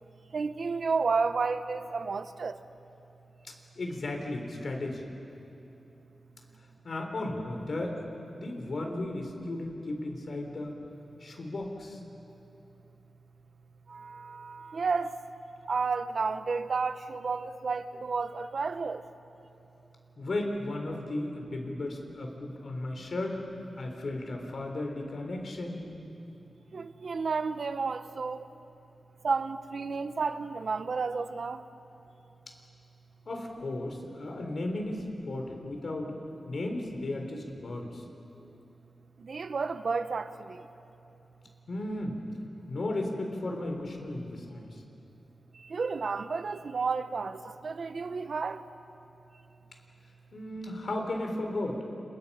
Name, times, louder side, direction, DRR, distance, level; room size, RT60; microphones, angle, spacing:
voice 1, 0.3-2.6 13.9-15.2 15.7-19.0 26.7-28.4 29.2-31.6 39.2-40.3 45.7-48.6, right 4 dB, 60° right, 0.9 m, -31 dB
voice 2, 3.4-5.0 6.8-10.7 11.2-12.0 20.2-23.5 23.8-25.9 33.3-36.1 36.5-38.0 41.7-42.2 42.7-44.8 50.3-51.8, left 2 dB, 60° left, 4.2 m, -35 dB
29.5 x 29.0 x 5.8 m
wide cardioid pair, 95°, 0 cm